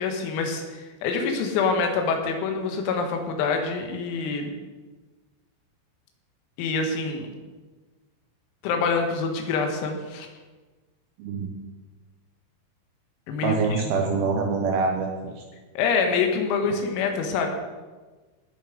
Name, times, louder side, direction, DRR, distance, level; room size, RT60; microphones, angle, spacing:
voice 1, 0.0-4.5 6.6-7.3 8.6-10.3 13.3-13.8 15.8-17.5, left 4 dB, 90° left, 4 dB, 4.3 m, -26 dB
voice 2, 11.2-11.5 13.4-15.4, right 4 dB, 90° right, 2 dB, 2.1 m, -25 dB
18.0 x 7.2 x 5.2 m, 1.3 s
omnidirectional pair, 5.9 m